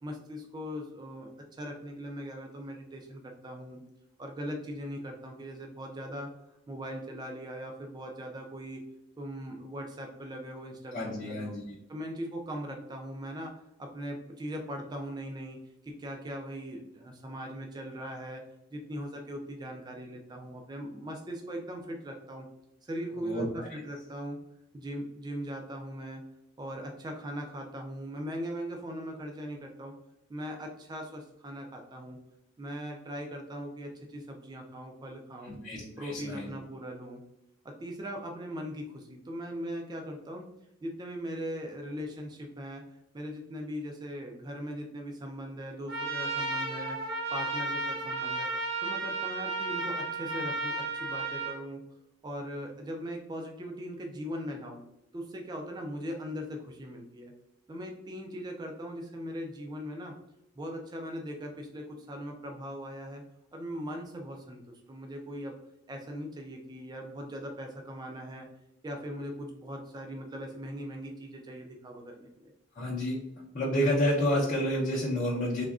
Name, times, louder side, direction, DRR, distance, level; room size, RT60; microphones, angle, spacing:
voice 1, 0.0-3.8 4.2-6.3 6.7-8.8 9.2-11.5 11.9-18.4 18.7-22.5 22.8-24.4 24.7-26.2 26.6-30.0 30.3-32.2 32.6-35.6 36.0-37.2 37.6-40.5 40.8-47.0 47.3-48.5 48.8-51.8 52.2-54.8 55.1-57.3 57.7-60.2 60.6-63.2 63.5-65.6 65.9-68.5 68.8-72.5, equal, 20° right, 2 dB, 0.3 m, -40 dB
voice 2, 10.9-11.6 23.2-23.7 35.5-36.5 72.7-73.2 73.5-75.6, equal, 40° left, -7 dB, 0.6 m, -29 dB
Trumpet, 45.9-51.6, right 3 dB, 75° right, 1.0 m, -33 dB
3.5 x 2.2 x 2.3 m, 0.85 s
head